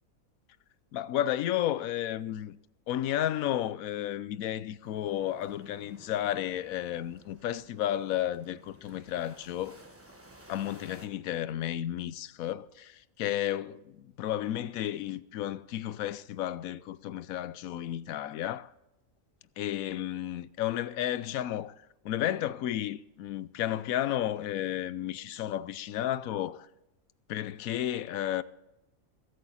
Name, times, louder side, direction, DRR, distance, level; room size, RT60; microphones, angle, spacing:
voice 1, 0.9-2.6 2.9-9.7 10.5-18.7 19.6-26.7 27.3-28.4, left 12 dB, 80° left, 1.0 m, -32 dB
sound 1, 4.8-11.1, right 1 dB, 10° right, 1.3 m, -55 dB
21.5 x 8.8 x 4.2 m
omnidirectional pair, 1.4 m